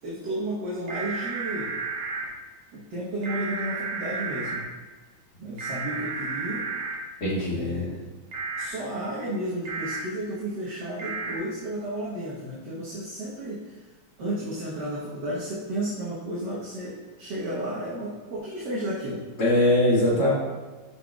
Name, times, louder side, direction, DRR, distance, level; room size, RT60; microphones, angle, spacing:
voice 1, 0.0-1.7 2.7-4.6 5.4-6.6 7.5-8.0 8.6-13.9 14.2-19.2, right 1 dB, 60° right, -7 dB, 1.8 m, -32 dB
sound 1, 0.9-2.3 3.2-4.6 5.6-7.0 8.3-8.7 9.7-10.0 11.0-11.3, right 4 dB, 80° right, 2.1 m, -32 dB
voice 2, 7.2-7.9 19.4-20.3, left 1 dB, 50° left, -7 dB, 2.5 m, -22 dB
10.0 x 5.8 x 2.4 m, 1.4 s
omnidirectional pair, 2.3 m